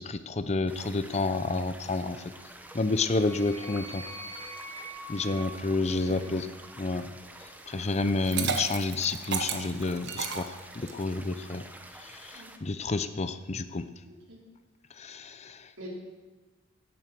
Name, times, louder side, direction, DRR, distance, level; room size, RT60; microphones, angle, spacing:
voice 1, 0.0-2.2 2.7-4.0 5.1-6.5 6.8-7.1 7.7-11.6 12.0-13.9 15.0-15.9, left 3 dB, 35° left, 11 dB, 0.6 m, -30 dB
sound 1, 0.7-12.6, right 1 dB, 10° right, 1.0 m, -49 dB
sound 2, 2.5-6.8, right 1 dB, 15° left, 1.9 m, -45 dB
Liquid, 8.1-11.1, right 6 dB, 60° right, 1.2 m, -33 dB
voice 2, 14.1-14.4 15.8-15.9, equal, 80° right, -3 dB, 4.5 m, -45 dB
16.5 x 8.9 x 6.1 m, 1.2 s
head